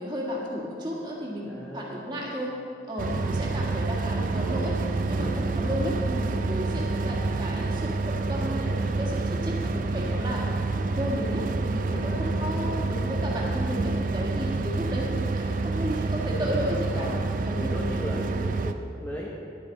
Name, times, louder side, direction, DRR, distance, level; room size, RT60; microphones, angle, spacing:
voice 1, 0.0-2.5 2.9-4.8 5.1-10.5 10.9-17.1 17.4-17.8 18.3-18.4, equal, 25° right, -4 dB, 1.8 m, -33 dB
voice 2, 1.4-2.2 5.1-5.5 11.9-12.4 16.3-16.6 16.9-17.2 17.5-19.3, equal, 10° left, -4 dB, 0.9 m, -37 dB
sound 1, 3.0-18.7, right 3 dB, 45° right, 0.4 m, -28 dB
sound 2, 4.3-9.7, right 3 dB, 70° right, 1.3 m, -42 dB
11.0 x 10.5 x 4.0 m, 2.5 s
head